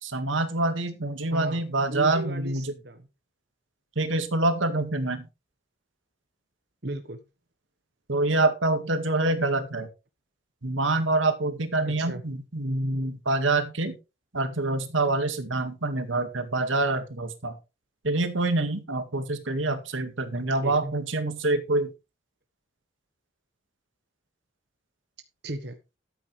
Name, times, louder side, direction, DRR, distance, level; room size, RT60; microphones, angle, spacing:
voice 1, 0.0-2.7 4.0-5.3 8.1-9.9 10.6-14.0 14.3-17.6 18.0-21.9, right 2 dB, 85° right, 9 dB, 2.0 m, -26 dB
voice 2, 1.3-1.6 1.9-3.1 6.8-7.2 11.8-12.2 20.6-20.9 25.4-25.8, right 1 dB, 55° right, 8 dB, 1.3 m, -35 dB
13.0 x 9.1 x 3.4 m, 0.28 s
head